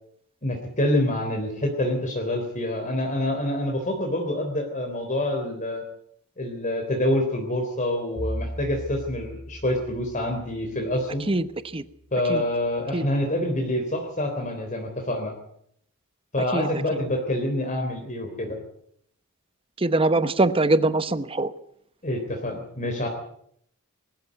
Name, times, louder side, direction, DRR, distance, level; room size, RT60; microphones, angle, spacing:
voice 1, 0.4-5.8 6.4-11.3 12.1-15.3 16.3-18.6 22.0-23.1, left 1 dB, 35° left, 2 dB, 3.5 m, -26 dB
Bowed string instrument, 8.2-12.4, equal, 5° right, 1.8 m, -38 dB
voice 2, 19.8-21.5, right 2 dB, 25° right, 13 dB, 1.0 m, -22 dB
21.0 x 14.0 x 9.3 m, 0.69 s
head